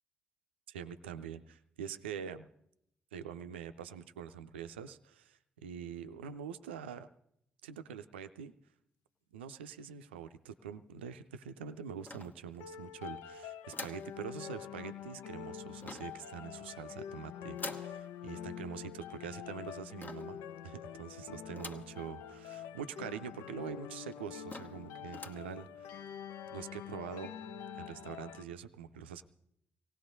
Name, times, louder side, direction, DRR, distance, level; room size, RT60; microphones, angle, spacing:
voice 1, 0.7-2.5 3.1-7.1 7.6-8.5 9.3-20.4 20.6-27.4 27.7-29.2, right 7 dB, 80° right, 11 dB, 0.5 m, -45 dB
sound 1, 12.1-12.8 13.7-14.1 15.8-16.3 17.6-18.0 20.0-20.4 21.6-22.0 22.5-22.6 22.8-22.9 23.6-23.7 24.1-24.2 24.5-24.8 25.1-25.5, left 2 dB, 30° left, 1.2 m, -45 dB
sound 2, 12.6-28.4, left 9 dB, 70° left, 0.6 m, -46 dB
24.5 x 18.0 x 2.6 m, 0.77 s
figure-of-eight pair, 40°, 6 cm